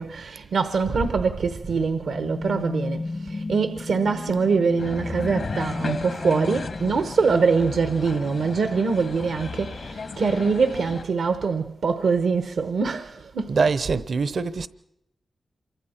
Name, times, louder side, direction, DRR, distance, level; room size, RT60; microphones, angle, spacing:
voice 1, 0.0-13.7, right 5 dB, 90° right, 1.0 m, -24 dB
sound 1, 1.4-7.8, left 2 dB, 40° left, 0.7 m, -34 dB
sound 2, 4.8-11.0, left 4 dB, 75° left, 1.8 m, -35 dB
voice 2, 13.5-14.7, right 4 dB, 70° right, 0.8 m, -24 dB
27.0 x 24.0 x 4.4 m
cardioid pair, 55°, 0 cm